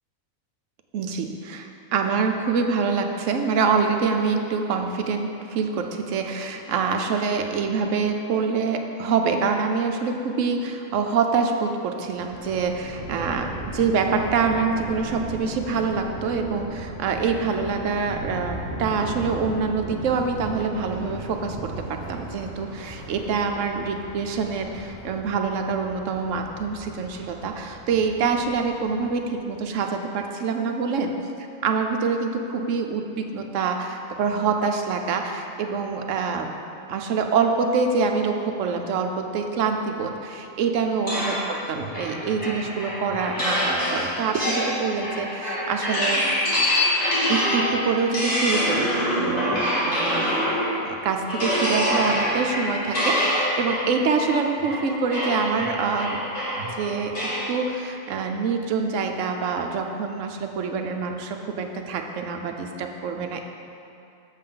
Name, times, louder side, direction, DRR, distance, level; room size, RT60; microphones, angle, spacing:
voice 1, 0.9-36.5 36.9-46.2 47.3-50.3 50.8-56.2 56.7-63.5, right 5 dB, 70° right, 4 dB, 0.9 m, -25 dB
Thunder, 12.1-29.5, right 1 dB, 70° left, 2.0 m, -37 dB
sound 1, 41.1-50.9 51.3-57.5, equal, 50° left, 2.3 m, -25 dB
7.5 x 7.0 x 3.8 m, 2.7 s
omnidirectional pair, 1.4 m